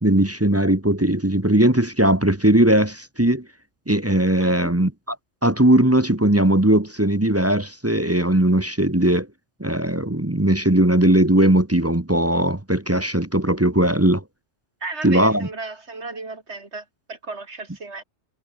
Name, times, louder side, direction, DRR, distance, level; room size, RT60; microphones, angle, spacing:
voice 1, 0.0-3.4 3.9-4.9 5.4-9.3 9.6-14.2 15.0-15.5, right 1 dB, 10° right, 1.1 m, -18 dB
voice 2, 4.4-4.7 14.8-18.0, right 3 dB, 55° right, 3.9 m, -34 dB
omnidirectional pair, 1.3 m